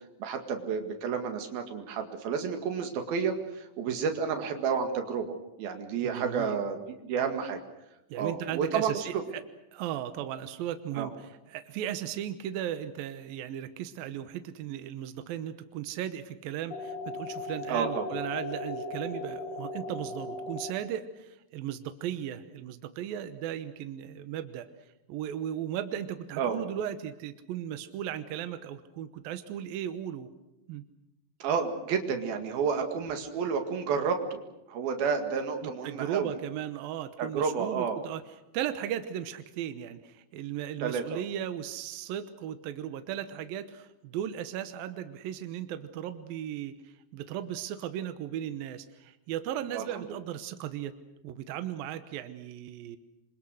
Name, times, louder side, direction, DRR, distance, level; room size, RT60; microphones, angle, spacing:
voice 1, 0.2-7.6 8.1-9.2 11.0-11.1 17.7-18.1 26.4-26.6 31.4-34.4 34.7-36.3 37.2-38.0 40.8-41.2 49.7-50.2, right 6 dB, 60° right, 5 dB, 3.5 m, -31 dB
voice 2, 6.0-6.6 8.1-9.4 9.7-24.7 25.1-30.3 30.7-30.8 35.6-38.2 38.5-46.7 47.1-50.9 51.2-53.0, right 10 dB, 75° right, 10 dB, 2.1 m, -36 dB
sound 1, 16.7-20.7, left 2 dB, 50° left, 4.5 m, -37 dB
27.0 x 25.0 x 6.5 m, 0.91 s
omnidirectional pair, 5.5 m